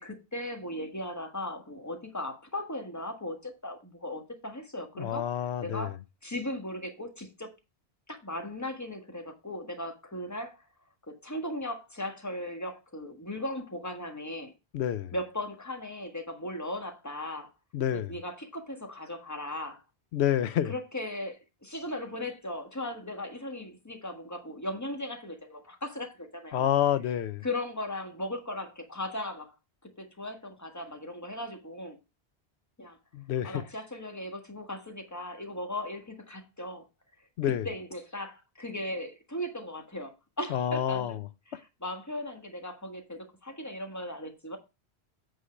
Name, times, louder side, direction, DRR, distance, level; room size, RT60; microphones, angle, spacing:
voice 1, 0.0-5.2 5.6-5.9 6.2-7.5 8.1-10.6 11.1-14.5 15.1-17.5 17.9-19.8 20.6-26.7 27.4-29.5 30.0-32.0 32.8-33.0 33.4-36.8 37.4-41.2 41.5-44.6, left 1 dB, 15° left, 1.4 m, -37 dB
voice 2, 5.0-5.9 14.7-15.1 17.7-18.1 20.1-20.7 26.5-27.4 33.1-33.6 37.4-37.7 40.5-41.2, left 10 dB, 85° left, 0.9 m, -28 dB
8.3 x 3.9 x 6.1 m
omnidirectional pair, 1.1 m